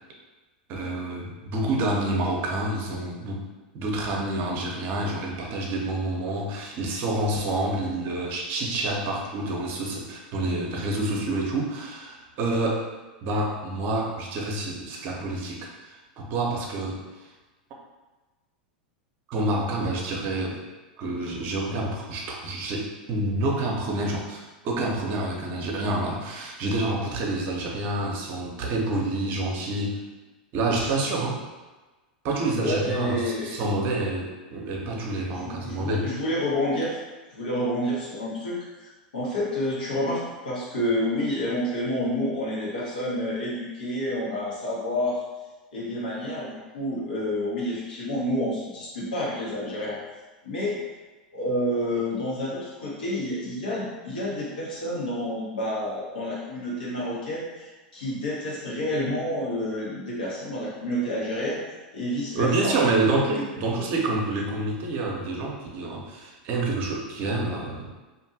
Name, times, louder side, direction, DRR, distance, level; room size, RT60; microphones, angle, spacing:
voice 1, 0.7-3.4 3.7-12.9 13.2-17.0 19.3-20.6 21.0-30.0 30.5-31.4 32.2-36.1 62.3-67.9, right 2 dB, 50° right, -1 dB, 0.6 m, -28 dB
voice 2, 32.6-33.5 35.3-37.0 37.3-45.2 45.7-50.0 50.4-50.8 51.3-61.6 61.9-62.7 63.2-63.4, left 1 dB, 85° left, -7 dB, 1.1 m, -29 dB
2.5 x 2.5 x 2.7 m, 1.2 s
hypercardioid pair, 105°, 5 cm